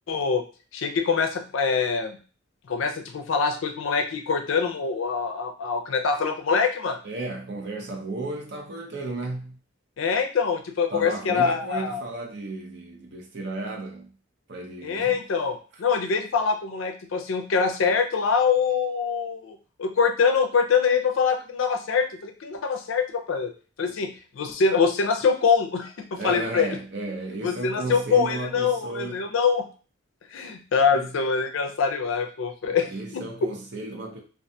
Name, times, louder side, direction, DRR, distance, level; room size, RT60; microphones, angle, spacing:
voice 1, 0.1-0.4 0.7-2.2 2.7-7.0 10.0-12.0 14.8-23.5 23.8-24.1 24.4-26.7 27.4-29.7 30.3-33.2, left 5 dB, 75° left, 5 dB, 0.4 m, -24 dB
voice 2, 7.0-9.6 10.9-14.1 14.5-15.2 23.8-23.9 26.2-29.3 30.9-31.1 32.7-34.2, right 2 dB, 55° right, 1 dB, 0.6 m, -34 dB
2.3 x 2.2 x 2.6 m, 0.37 s
head